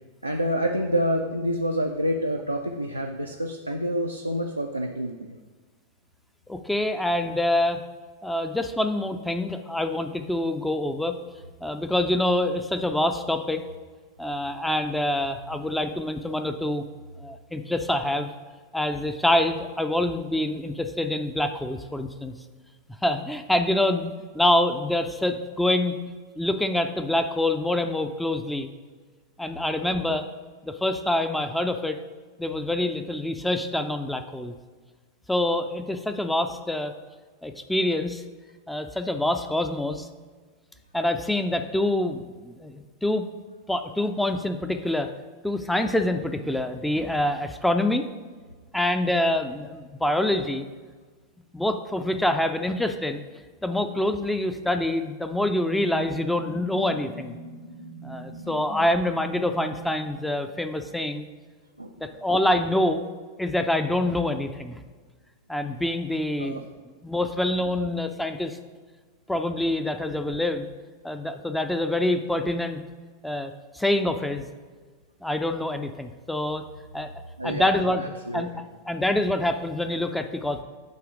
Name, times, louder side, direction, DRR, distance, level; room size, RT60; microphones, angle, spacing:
voice 1, 0.2-5.4 61.8-61.9 66.4-66.6 77.4-77.7 78.0-78.4, equal, 85° right, 2 dB, 0.4 m, -27 dB
voice 2, 6.5-7.8 8.2-11.2 11.6-13.6 14.2-16.8 17.2-18.3 18.7-22.3 23.0-26.0 26.4-28.7 29.4-30.2 30.6-32.0 32.4-34.5 35.3-36.9 37.4-38.2 38.7-40.1 40.9-43.3 43.7-45.1 45.4-48.1 48.7-50.6 51.5-53.2 53.6-57.4 58.0-61.3 62.0-63.1 63.4-64.7 65.5-66.6 67.0-68.6 69.3-70.7 71.0-72.8 73.2-74.5 75.2-76.6 76.9-77.1 77.4-78.0 78.3-80.6, left 1 dB, 5° left, 7 dB, 0.4 m, -26 dB
sound 1, 54.7-61.0, right 3 dB, 55° left, 1.2 m, -41 dB
7.9 x 3.1 x 4.8 m, 1.4 s
figure-of-eight pair, 90°, 0 cm